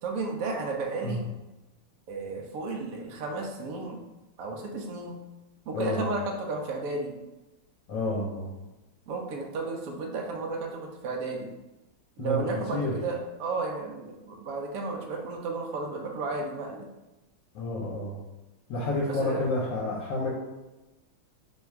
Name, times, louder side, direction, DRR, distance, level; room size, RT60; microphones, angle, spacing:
voice 1, 0.0-1.2 2.1-4.0 4.4-5.2 5.7-7.1 9.1-11.5 12.2-16.9 19.1-19.5, right 3 dB, 70° right, 1 dB, 0.8 m, -33 dB
voice 2, 5.7-6.1 7.9-8.5 12.2-12.9 17.5-18.2 18.7-20.3, left 2 dB, 70° left, -5 dB, 1.3 m, -30 dB
3.3 x 2.3 x 4.4 m, 1.0 s
omnidirectional pair, 2.1 m